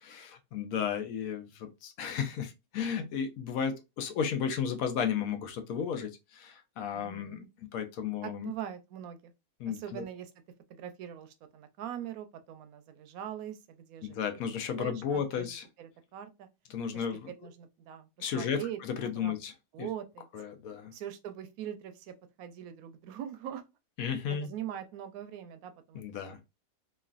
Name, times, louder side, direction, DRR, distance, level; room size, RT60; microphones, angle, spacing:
voice 1, 0.0-8.5 9.6-10.0 14.0-15.6 16.7-17.3 18.2-19.5 20.3-20.9 24.0-24.5 25.9-26.4, left 7 dB, 75° left, 1.0 m, -34 dB
voice 2, 6.9-7.5 8.2-9.3 9.7-10.3 10.7-14.2 14.8-16.5 16.9-19.4 19.7-20.3 20.9-23.6 24.3-26.4, right 10 dB, 80° right, 1.0 m, -42 dB
3.1 x 2.4 x 2.4 m
omnidirectional pair, 1.5 m